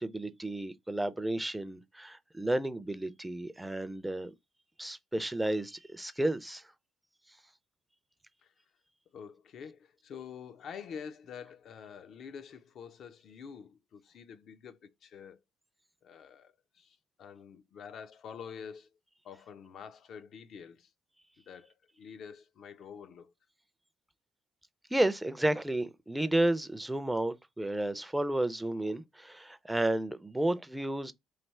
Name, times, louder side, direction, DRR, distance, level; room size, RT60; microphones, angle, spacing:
voice 1, 0.0-4.3 4.8-6.6 24.9-31.1, right 1 dB, 10° right, 0.4 m, -32 dB
voice 2, 9.1-15.4 16.0-18.9 19.2-20.9 21.4-23.3, left 7 dB, 60° left, 0.5 m, -47 dB
3.3 x 2.7 x 4.2 m
cardioid pair, 110°, 0 cm